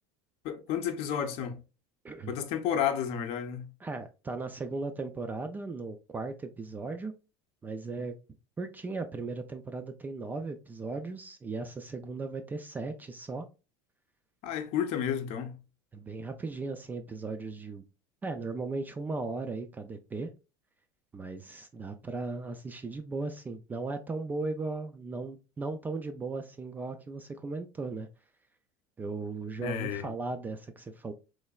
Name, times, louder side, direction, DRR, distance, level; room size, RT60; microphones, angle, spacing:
voice 1, 0.4-1.6 2.3-3.7 14.4-15.6 29.6-30.1, left 8 dB, 50° left, 0.6 m, -31 dB
voice 2, 3.8-7.1 7.6-8.1 8.6-13.5 15.9-17.8 18.2-20.3 21.1-28.1 29.0-31.1, right 3 dB, 15° right, 0.3 m, -37 dB
3.8 x 3.2 x 2.2 m
supercardioid pair, 145°, 12 cm